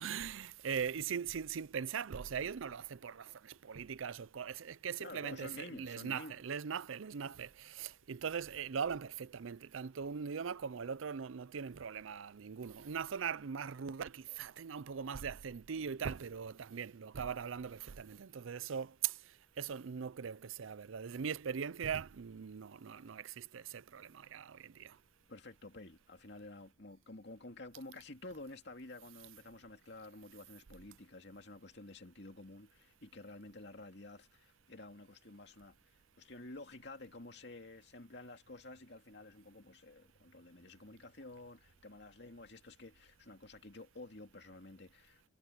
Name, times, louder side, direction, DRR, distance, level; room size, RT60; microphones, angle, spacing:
voice 1, 0.0-19.2 19.6-25.0, right 7 dB, 85° right, 0.5 m, -40 dB
voice 2, 5.0-6.4 22.9-23.0 25.3-45.3, left 2 dB, 60° left, 2.5 m, -51 dB
head